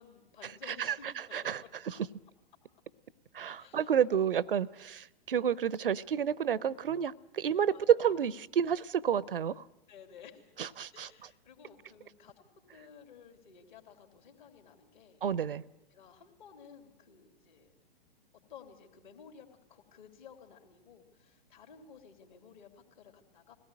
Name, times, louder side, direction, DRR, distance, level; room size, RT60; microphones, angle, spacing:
voice 1, 0.0-1.7 3.5-3.9 4.6-4.7 5.9-6.1 7.4-8.2 9.9-10.6 10.9-12.4 12.7-15.2 15.9-17.7 18.5-23.6, left 7 dB, 55° left, 3.3 m, -55 dB
voice 2, 1.3-1.6 3.3-9.6 10.6-11.1 15.2-15.6, right 8 dB, 70° right, 0.7 m, -30 dB
21.5 x 17.5 x 8.8 m
figure-of-eight pair, 110°, 29 cm